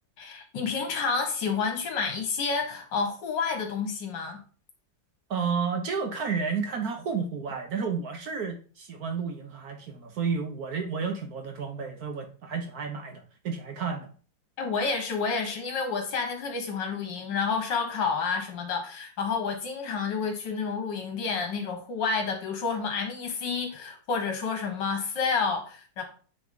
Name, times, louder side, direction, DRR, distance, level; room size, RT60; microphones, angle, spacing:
voice 1, 0.2-4.4 14.6-26.0, left 5 dB, 70° left, 2.0 m, -29 dB
voice 2, 5.3-14.1, right 5 dB, 60° right, 1.1 m, -31 dB
8.8 x 3.4 x 3.7 m
omnidirectional pair, 2.1 m